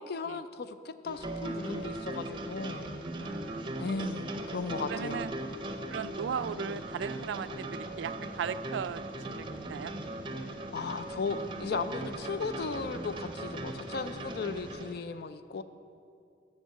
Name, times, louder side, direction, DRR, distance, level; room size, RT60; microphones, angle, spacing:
voice 1, 0.0-3.0 3.8-5.3 10.7-15.6, left 4 dB, 60° left, 12 dB, 0.4 m, -36 dB
sound 1, 1.0-14.9, right 1 dB, 30° right, 0.6 m, -38 dB
voice 2, 3.2-3.6 4.9-5.3 5.9-9.9, right 7 dB, 90° right, 15 dB, 0.3 m, -37 dB
7.3 x 6.4 x 7.0 m, 2.4 s
head